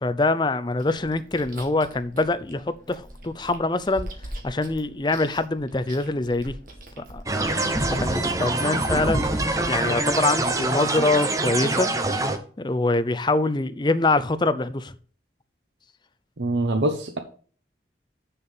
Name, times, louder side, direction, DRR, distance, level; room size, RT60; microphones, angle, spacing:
voice 1, 0.0-4.1 4.4-6.5 7.1-7.2 8.0-9.3 9.7-11.9 12.6-14.9, left 2 dB, 25° left, 11 dB, 0.5 m, -24 dB
Chewing mastication, 0.8-7.7, right 1 dB, 50° right, 1.9 m, -42 dB
sound 1, 7.3-12.4, right 2 dB, 20° right, 0.8 m, -24 dB
voice 2, 16.4-17.2, right 2 dB, 80° right, 7 dB, 0.9 m, -24 dB
7.1 x 6.8 x 5.6 m, 0.43 s
head